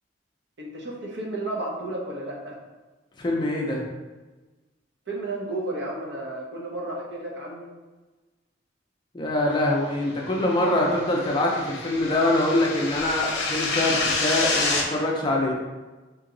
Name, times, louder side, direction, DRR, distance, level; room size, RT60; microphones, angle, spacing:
voice 1, 0.6-2.6 5.1-7.7, right 2 dB, 65° right, -2 dB, 0.8 m, -32 dB
voice 2, 3.2-3.8 9.1-15.6, left 1 dB, 25° left, -2 dB, 0.4 m, -24 dB
sound 1, 10.4-14.8, left 3 dB, 60° left, 0.7 m, -28 dB
2.9 x 2.8 x 3.8 m, 1.2 s
head